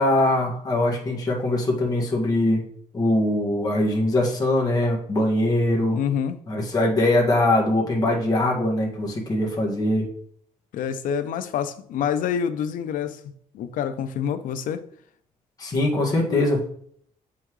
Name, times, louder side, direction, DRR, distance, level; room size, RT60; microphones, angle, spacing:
voice 1, 0.0-2.6 2.9-6.0 6.5-10.0 15.6-16.7, left 1 dB, 30° left, 1.9 m, -22 dB
voice 2, 5.9-6.4 10.7-13.2 13.5-14.9, left 8 dB, 85° left, 0.7 m, -27 dB
7.9 x 5.7 x 3.2 m
cardioid pair, 145°, 13 cm